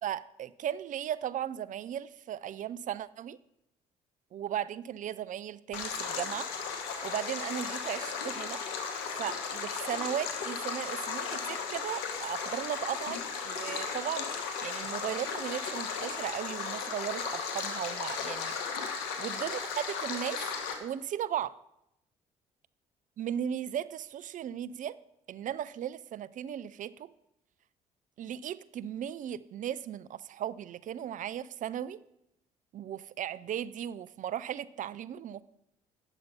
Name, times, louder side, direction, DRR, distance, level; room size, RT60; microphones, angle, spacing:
voice 1, 0.0-3.4 4.3-6.5 7.0-8.6 9.2-18.5 19.2-20.4 20.8-21.6 23.2-25.0 25.3-27.1 28.2-32.0 32.7-35.4, right 10 dB, 55° right, 18 dB, 0.4 m, -36 dB
Stream, 5.7-20.7, left 6 dB, 85° left, 1.3 m, -36 dB
9.2 x 6.6 x 5.5 m, 0.84 s
hypercardioid pair, 60°, 16 cm